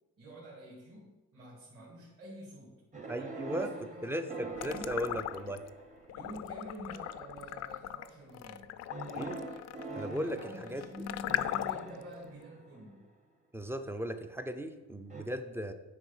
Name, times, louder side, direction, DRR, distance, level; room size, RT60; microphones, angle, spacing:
voice 1, 0.2-2.8 3.1-5.0 6.1-8.7 10.2-13.1, equal, 45° right, -5 dB, 2.2 m, -48 dB
sound 1, 2.9-6.3 7.0-7.5 8.9-13.0 15.1-15.2, right 3 dB, 25° right, 1.0 m, -44 dB
voice 2, 3.1-3.7 4.0-5.6 9.2-9.4 9.9-10.8 13.5-15.7, equal, 10° right, 8 dB, 0.4 m, -37 dB
sound 2, 4.6-5.7 6.1-12.0, left 13 dB, 60° left, 0.4 m, -38 dB
9.5 x 4.1 x 5.4 m, 1.1 s
cardioid pair, 150°, 30 cm